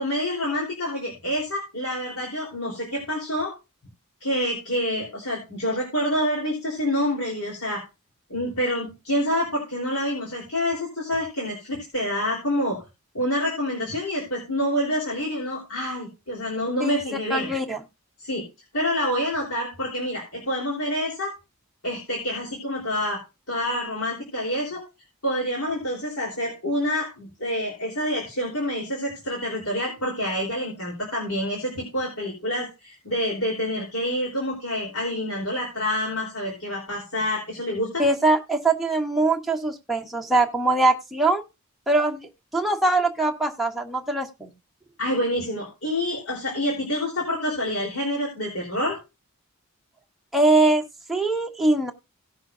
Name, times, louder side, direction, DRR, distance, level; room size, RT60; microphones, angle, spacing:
voice 1, 0.0-3.5 4.2-7.8 8.3-12.8 13.1-17.5 18.2-18.4 18.7-21.3 21.8-23.2 23.5-24.8 25.2-38.0 45.0-49.0, equal, 80° left, -3 dB, 3.6 m, -27 dB
voice 2, 17.3-17.8 38.0-41.4 41.9-44.5 50.3-50.8 51.1-51.9, right 2 dB, ahead, -1 dB, 1.3 m, -22 dB
18.0 x 6.1 x 2.6 m, 0.27 s
head